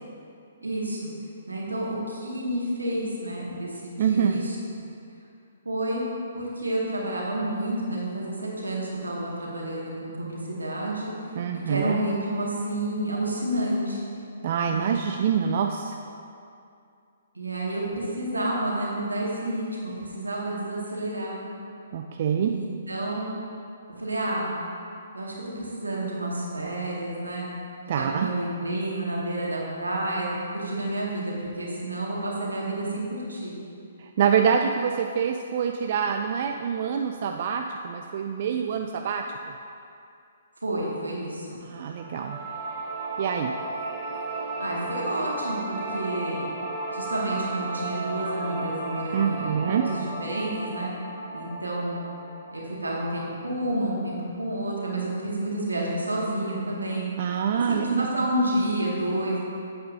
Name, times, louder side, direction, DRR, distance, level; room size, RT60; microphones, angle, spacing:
voice 1, 0.6-1.1 1.5-4.6 5.6-6.0 6.3-11.1 11.7-14.0 14.7-14.9 17.3-21.5 22.3-23.3 24.0-24.5 25.1-27.5 28.0-30.3 30.5-33.5 40.6-41.6 44.6-46.4 46.9-50.9 51.3-52.0 52.5-57.1 57.5-59.4, right 1 dB, 85° right, -4 dB, 1.9 m, -30 dB
voice 2, 4.0-4.4 11.4-11.9 14.4-16.0 21.9-22.5 27.9-28.3 34.0-39.5 41.6-42.4 43.2-43.5 49.1-49.9 57.2-58.1, right 7 dB, 50° right, 4 dB, 0.4 m, -26 dB
sound 1, 42.0-53.0, right 2 dB, 15° right, 1.4 m, -34 dB
9.1 x 7.8 x 2.7 m, 2.5 s
figure-of-eight pair, 130°, 0 cm